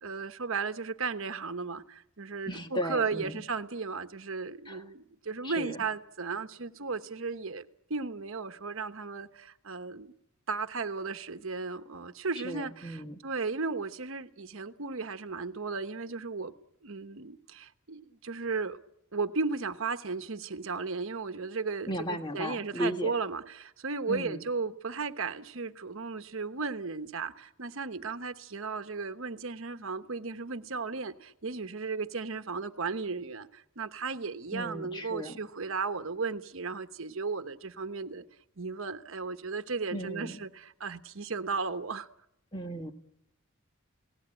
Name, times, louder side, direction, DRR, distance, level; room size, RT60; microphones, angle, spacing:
voice 1, 0.0-10.1 10.5-16.5 16.8-18.8 19.1-38.2 38.6-42.1, right 4 dB, 65° right, 9 dB, 1.1 m, -35 dB
voice 2, 2.5-3.4 4.7-4.8 5.4-5.8 12.4-13.2 21.9-23.1 24.1-24.4 34.5-35.4 39.9-40.4 42.5-42.9, equal, 20° left, 5 dB, 1.6 m, -36 dB
28.5 x 18.0 x 9.0 m, 0.82 s
head